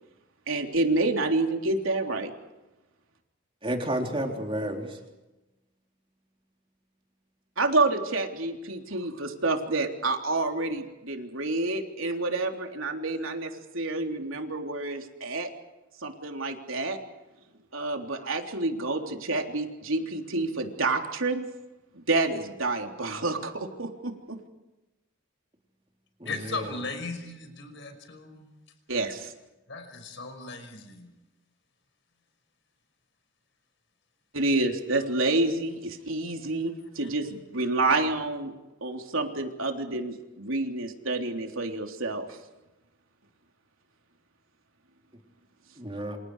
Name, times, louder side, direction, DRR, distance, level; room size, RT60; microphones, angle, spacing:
voice 1, 0.5-2.3 7.6-15.5 16.0-17.0 17.7-21.5 21.9-24.4 28.9-29.3 34.3-38.5 38.8-42.4, right 2 dB, 75° right, 3 dB, 3.4 m, -28 dB
voice 2, 3.6-5.0 26.2-26.8 45.8-46.2, right 1 dB, 25° right, 2 dB, 3.7 m, -31 dB
voice 3, 26.3-28.5 29.7-31.1 37.0-37.1, left 3 dB, 60° left, 7 dB, 5.5 m, -37 dB
28.5 x 28.0 x 4.9 m, 1.0 s
head